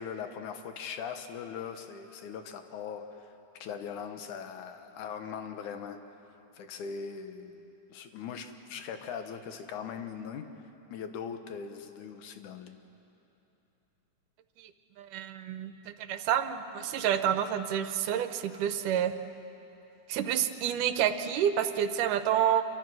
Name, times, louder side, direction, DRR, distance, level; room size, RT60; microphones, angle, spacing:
voice 1, 0.0-3.3 3.6-6.0 6.5-10.5 10.9-12.9, left 7 dB, 75° left, 7 dB, 2.6 m, -40 dB
voice 2, 15.0-19.1 20.1-22.6, right 9 dB, 90° right, 10 dB, 2.5 m, -29 dB
27.0 x 24.0 x 6.2 m, 3.0 s
omnidirectional pair, 3.6 m